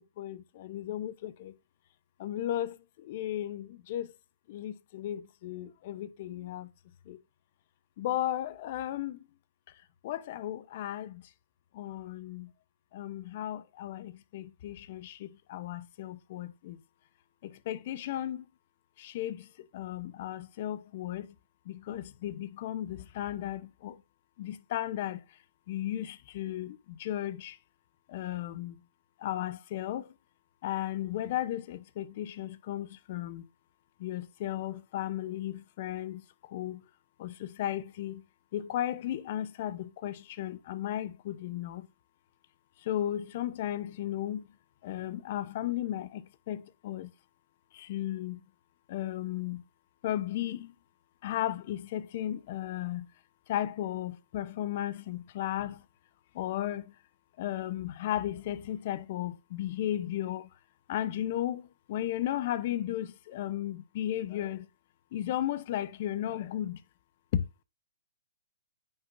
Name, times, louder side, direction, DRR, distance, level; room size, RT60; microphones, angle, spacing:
voice 1, 0.2-1.5 2.2-2.7 3.1-4.1 4.5-6.7 7.1-7.2 8.0-9.2 10.0-11.2 11.8-12.5 12.9-16.8 17.7-18.4 19.0-19.4 19.7-21.3 21.7-23.9 24.4-25.2 25.7-27.5 28.1-28.7 29.2-30.0 30.6-33.4 34.0-36.2 36.5-36.8 37.2-38.2 38.5-41.8 42.9-44.4 44.8-46.2 46.5-47.1 47.9-48.4 48.9-49.6 50.0-50.7 51.2-53.1 53.5-55.8 56.4-56.8 57.4-60.4 60.9-61.6 61.9-64.6 65.1-66.8 67.3-67.4, left 12 dB, 50° left, 0.9 m, -35 dB
9.3 x 5.7 x 2.6 m
hypercardioid pair, 140°, 0 cm